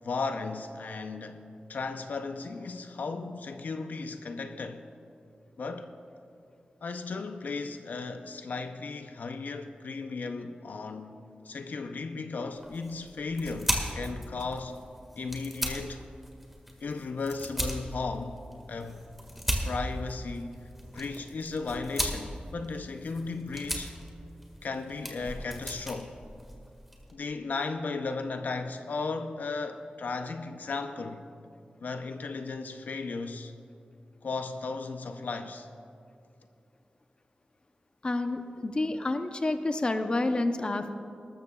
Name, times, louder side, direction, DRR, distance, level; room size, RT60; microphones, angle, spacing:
voice 1, 0.0-1.4 1.7-4.8 5.6-5.9 6.8-11.2 11.4-14.8 15.2-16.0 16.8-18.4 18.7-19.1 19.6-20.6 20.8-23.9 24.6-26.2 27.1-31.2 31.8-33.5 34.2-35.7, left 4 dB, 75° left, 0.6 m, -35 dB
sound 1, 12.6-27.1, equal, 5° right, 1.8 m, -37 dB
voice 2, 38.0-41.0, left 2 dB, 35° left, 0.7 m, -29 dB
19.5 x 13.5 x 2.3 m
wide cardioid pair, 105°, 3 cm